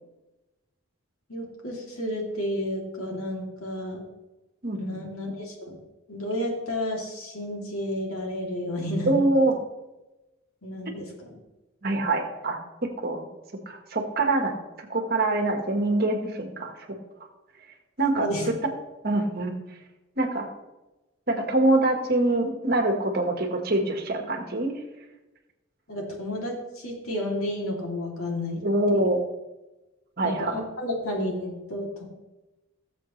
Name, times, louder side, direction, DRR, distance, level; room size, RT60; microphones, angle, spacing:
voice 1, 1.3-4.0 4.7-5.8 6.1-9.5 10.6-11.4 18.1-18.5 25.9-28.6 30.2-32.0, left 1 dB, 90° left, 0 dB, 2.9 m, -31 dB
voice 2, 4.6-5.0 9.1-9.5 11.8-12.6 13.0-13.2 13.7-16.7 18.0-18.3 19.0-19.5 20.2-20.5 21.3-24.7 28.6-29.2 30.2-30.5, right 2 dB, 45° right, 4 dB, 1.5 m, -24 dB
19.0 x 7.3 x 3.2 m, 1.0 s
head